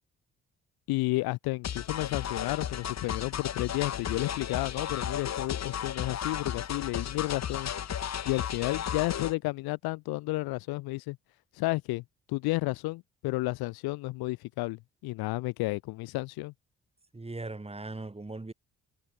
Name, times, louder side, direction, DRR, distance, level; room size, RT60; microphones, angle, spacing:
voice 1, 0.9-7.7 8.2-11.2 11.6-12.0 12.3-16.5, left 21 dB, 75° left, 1.3 m, -32 dB
sound 1, 1.6-9.3, left 9 dB, 45° left, 1.1 m, -34 dB
voice 2, 17.1-18.5, right 2 dB, 15° right, 2.0 m, -39 dB
hypercardioid pair, 45°, 37 cm